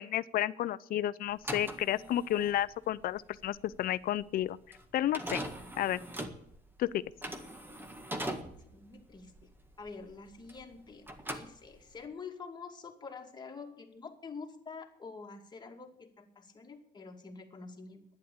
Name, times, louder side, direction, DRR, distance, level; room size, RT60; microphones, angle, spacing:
voice 1, 0.0-4.6 4.9-5.4 5.8-6.0 6.8-7.0, left 12 dB, 60° left, 18 dB, 0.6 m, -31 dB
sound 1, 1.3-10.8 11.0-12.1, right 1 dB, 10° right, 1.7 m, -41 dB
voice 2, 8.7-9.5 9.8-18.0, left 4 dB, 25° left, 3 dB, 2.4 m, -47 dB
11.0 x 10.0 x 8.7 m, 0.72 s
cardioid pair, 110°, 17 cm